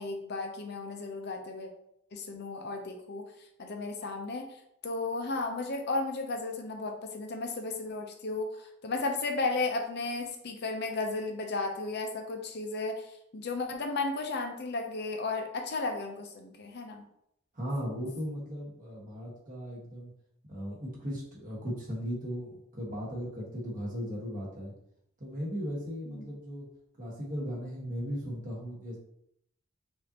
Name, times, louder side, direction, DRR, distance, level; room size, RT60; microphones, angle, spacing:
voice 1, 0.0-1.7 2.1-3.3 3.6-4.5 4.8-17.0 26.1-26.3, left 3 dB, 50° left, 4 dB, 0.6 m, -34 dB
voice 2, 17.5-20.1 20.5-24.7 25.2-26.7 27.0-29.0, equal, 40° right, -3 dB, 1.3 m, -37 dB
5.1 x 2.7 x 2.8 m, 0.74 s
head